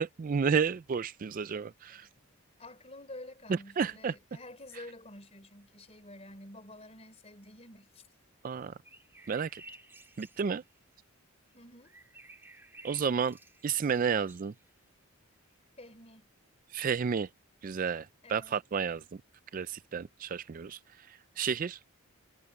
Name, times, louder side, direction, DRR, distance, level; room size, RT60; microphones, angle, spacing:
voice 1, 0.0-2.1 3.5-4.1 8.4-8.7 9.3-9.6 10.2-10.6 12.8-13.4 13.6-14.5 16.7-17.3 17.6-19.0 19.5-20.8 21.4-21.8, right 6 dB, 40° right, 0.3 m, -31 dB
voice 2, 1.9-8.0 11.5-11.9 15.8-16.3 18.2-18.6, left 1 dB, 30° left, 4.1 m, -50 dB
sound 1, 8.8-10.8 11.8-14.7 15.5-15.6, right 2 dB, 10° right, 2.3 m, -55 dB
head